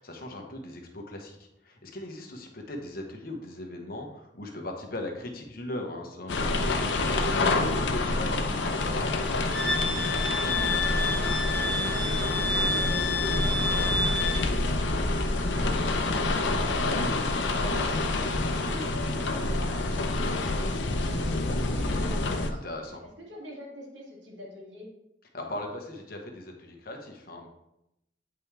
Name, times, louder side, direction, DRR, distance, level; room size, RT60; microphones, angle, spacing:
voice 1, 0.0-9.2 17.6-18.0 22.5-23.0 25.3-27.5, left 1 dB, 55° left, 2 dB, 1.2 m, -39 dB
sound 1, 6.3-22.5, left 2 dB, 75° left, 0.7 m, -27 dB
Wind instrument woodwind instrument, 9.5-14.4, left 2 dB, 5° left, 0.7 m, -29 dB
voice 2, 10.3-17.8 18.2-22.6 23.3-24.9, left 1 dB, 80° right, -3 dB, 2.5 m, -44 dB
8.7 x 5.4 x 3.4 m, 0.85 s
head